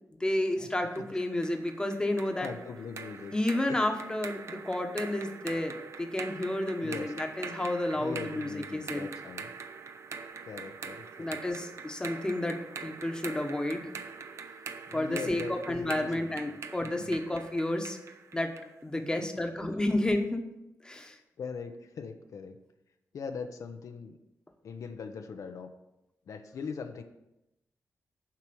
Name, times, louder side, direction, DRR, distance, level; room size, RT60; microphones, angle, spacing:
voice 1, 0.2-2.5 3.3-9.1 11.2-13.9 14.9-18.0 18.3-18.5 18.8-20.4 20.8-21.2, left 1 dB, 15° left, 4 dB, 1.1 m, -31 dB
sound 1, 1.0-18.8, right 5 dB, 55° right, 0.6 m, -44 dB
voice 2, 2.4-3.3 3.7-3.8 6.8-7.1 8.0-9.5 10.4-11.4 14.9-17.1 18.9-19.0 21.4-22.6 23.1-24.2 24.6-25.7 26.3-27.0, left 5 dB, 75° left, 6 dB, 0.7 m, -41 dB
7.6 x 4.9 x 6.9 m, 0.90 s
wide cardioid pair, 105°, 6 cm